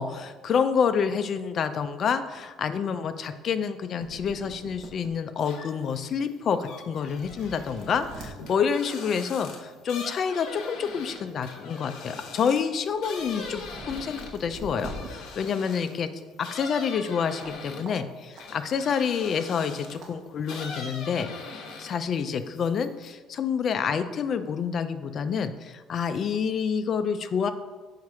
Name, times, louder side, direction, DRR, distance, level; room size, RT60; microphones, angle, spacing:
voice 1, 0.0-16.1 16.4-27.5, left 6 dB, 40° left, 10 dB, 0.4 m, -28 dB
sound 1, 4.0-5.1 5.7-5.8 6.6-6.7 7.0-8.3 9.6-9.8 10.2-11.2 11.6-15.1 17.4-17.6 17.8-17.9 18.3-18.5 19.5-19.7 20.0-20.1 20.5-20.6, right 2 dB, 50° right, 1.2 m, -44 dB
sound 2, 5.4-5.9 6.3-16.0 16.4-20.0 20.4-22.1 22.4-23.1, left 4 dB, 65° left, 1.0 m, -41 dB
6.5 x 4.2 x 4.7 m, 1.3 s
cardioid pair, 150°, 0 cm